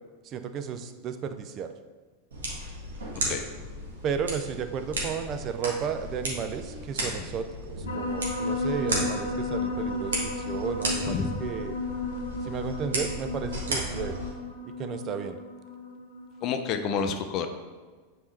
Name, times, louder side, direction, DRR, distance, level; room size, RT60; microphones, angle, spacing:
voice 1, 0.2-1.7 4.0-11.8 12.4-14.2 14.7-15.4, right 7 dB, 40° right, 9 dB, 0.5 m, -33 dB
sound 1, 2.3-14.3, right 1 dB, 80° right, 1.5 m, -35 dB
sound 2, 7.9-16.5, left 2 dB, 75° left, 0.8 m, -33 dB
voice 2, 11.0-11.4 16.4-17.5, left 6 dB, 45° left, 7 dB, 0.6 m, -29 dB
7.2 x 4.1 x 3.3 m, 1.4 s
hypercardioid pair, 95°, 0 cm